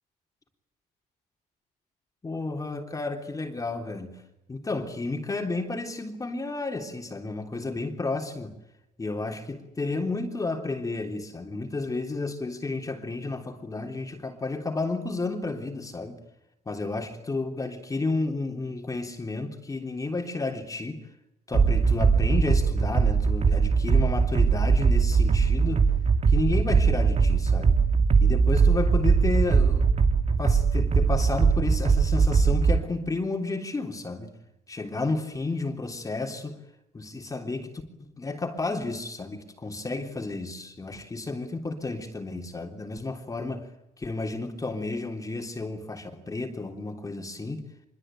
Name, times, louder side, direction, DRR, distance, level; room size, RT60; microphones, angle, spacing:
voice 1, 2.2-4.2 4.5-8.6 9.0-16.2 16.6-21.0 21.5-25.9 26.3-27.8 28.2-29.9 30.4-34.3 34.7-36.6 36.9-43.7 44.0-47.6, left 3 dB, 20° left, 3.5 m, -32 dB
sound 1, 21.5-32.8, right 5 dB, 40° right, 2.4 m, -21 dB
25.5 x 22.5 x 9.1 m
cardioid pair, 110°, 17 cm